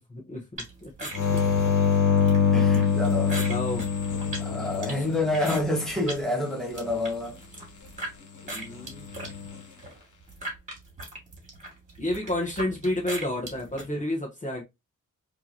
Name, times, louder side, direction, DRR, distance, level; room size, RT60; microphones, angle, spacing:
voice 1, 0.1-0.4 0.8-0.9 3.4-3.9 4.9-5.0 8.4-9.1 12.0-14.6, left 1 dB, 25° left, 1.0 m, -30 dB
sound 1, 0.6-6.2 6.6-8.1 8.5-13.9, right 1 dB, 25° right, 2.2 m, -39 dB
sound 2, 1.1-5.8 9.0-9.6, left 6 dB, 65° left, 1.4 m, -24 dB
voice 2, 2.5-3.5 4.4-7.3, left 2 dB, ahead, 1.2 m, -28 dB
4.5 x 3.0 x 2.8 m
wide cardioid pair, 175°, 31 cm